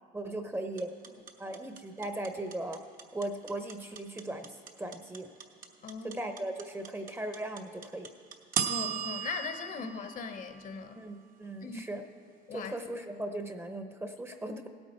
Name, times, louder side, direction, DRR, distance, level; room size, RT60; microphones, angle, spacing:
voice 1, 0.1-0.9 1.4-2.8 3.1-5.3 6.0-8.1 10.9-12.0 12.5-14.7, right 1 dB, 15° right, 0.7 m, -38 dB
sound 1, 0.8-10.9, right 8 dB, 55° right, 1.0 m, -37 dB
voice 2, 5.8-6.2 8.6-11.1 11.6-11.9 12.5-12.7, left 5 dB, 55° left, 0.9 m, -39 dB
16.5 x 8.8 x 4.3 m
cardioid pair, 110°, 17 cm